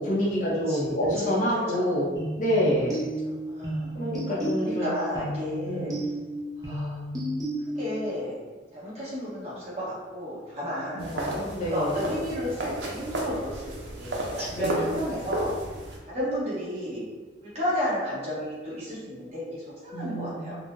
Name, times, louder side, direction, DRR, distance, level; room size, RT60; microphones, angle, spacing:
voice 1, 0.0-2.1 2.4-3.0 3.9-4.9 5.6-5.9 10.9-12.0 14.5-14.9 19.9-20.4, equal, 45° left, -5 dB, 0.6 m, -27 dB
voice 2, 0.7-1.9 2.8-2.9 3.5-3.9 4.6-5.9 6.6-7.0 7.8-8.4 8.7-11.1 11.6-15.5 16.1-17.0 17.4-20.6, equal, 35° right, -8 dB, 1.0 m, -32 dB
sound 1, 2.2-8.1, right 1 dB, 20° right, 0.5 m, -33 dB
sound 2, 11.0-16.0, right 1 dB, 70° right, 0.6 m, -33 dB
3.7 x 2.0 x 2.6 m, 1.3 s
head